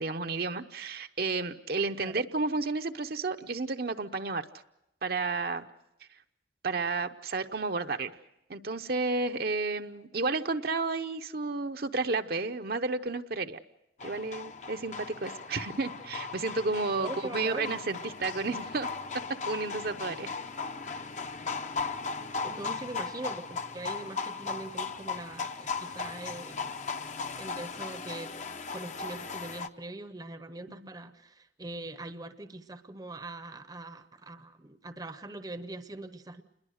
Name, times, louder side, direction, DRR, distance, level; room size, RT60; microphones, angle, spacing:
voice 1, 0.0-4.4 5.0-5.7 6.6-8.1 8.5-13.6 14.0-18.9 19.5-20.3 30.8-30.9, right 3 dB, 55° right, 7 dB, 0.8 m, -32 dB
sound 1, 14.0-29.7, left 4 dB, 40° left, 0.8 m, -37 dB
voice 2, 16.9-17.7 22.4-26.7 27.4-28.3 28.7-36.4, right 2 dB, 20° right, 10 dB, 0.8 m, -42 dB
28.0 x 21.5 x 6.5 m, 0.85 s
head